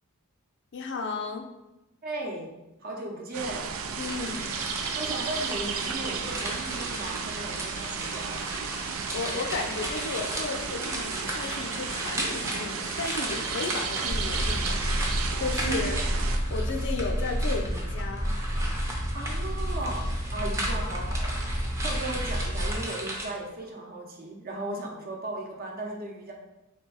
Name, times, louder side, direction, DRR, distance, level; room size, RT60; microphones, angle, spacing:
voice 1, 0.7-1.5 4.0-4.5 8.7-16.0 16.5-18.3, left 4 dB, 55° left, 4 dB, 0.5 m, -34 dB
voice 2, 2.0-2.5 2.8-3.7 4.8-8.4 15.6-16.0 19.1-21.5 21.8-26.3, right 2 dB, 45° right, 0 dB, 0.8 m, -36 dB
sound 1, 3.3-16.4, right 6 dB, 70° right, 0.4 m, -34 dB
sound 2, 4.0-23.3, right 1 dB, 15° right, 0.7 m, -36 dB
sound 3, 14.1-22.8, equal, 90° right, 1.0 m, -30 dB
3.8 x 3.4 x 3.9 m, 0.97 s
head